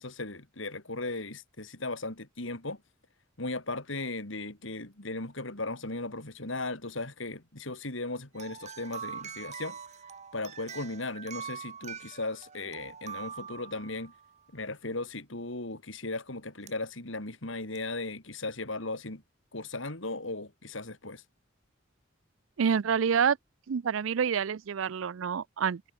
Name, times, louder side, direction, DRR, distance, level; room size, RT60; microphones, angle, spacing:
voice 1, 0.0-2.8 3.4-9.8 10.3-14.1 14.5-19.2 19.5-21.2, left 2 dB, 65° left, 3.6 m, -37 dB
sound 1, 8.3-14.3 16.7-16.8 17.7-17.8, right 7 dB, 35° right, 1.0 m, -43 dB
voice 2, 22.6-23.4 23.7-25.8, right 7 dB, 70° right, 0.4 m, -27 dB
head